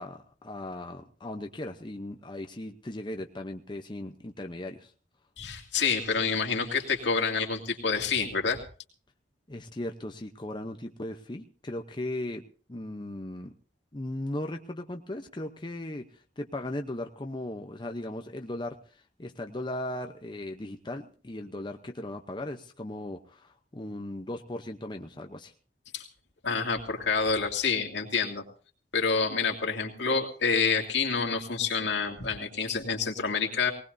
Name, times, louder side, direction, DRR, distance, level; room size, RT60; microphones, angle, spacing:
voice 1, 0.0-4.9 9.5-12.4 12.7-13.5 13.9-25.5, left 1 dB, 25° left, 4 dB, 0.8 m, -37 dB
voice 2, 5.4-8.6 25.9-26.0 26.4-28.4 28.9-33.7, left 5 dB, 80° left, 1 dB, 2.6 m, -28 dB
19.5 x 19.0 x 2.7 m, 0.40 s
head